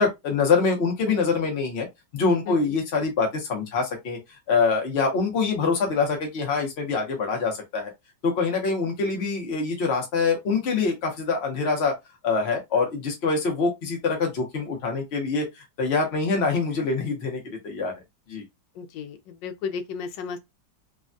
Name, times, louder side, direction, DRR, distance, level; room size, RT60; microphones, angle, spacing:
voice 1, 0.0-1.9 2.1-4.2 4.5-7.9 8.2-12.0 12.2-17.9 18.3-18.4, left 4 dB, 60° left, 0.7 m, -25 dB
voice 2, 2.5-2.8 18.7-20.4, left 6 dB, 75° left, 1.2 m, -34 dB
3.3 x 2.2 x 2.5 m
omnidirectional pair, 2.1 m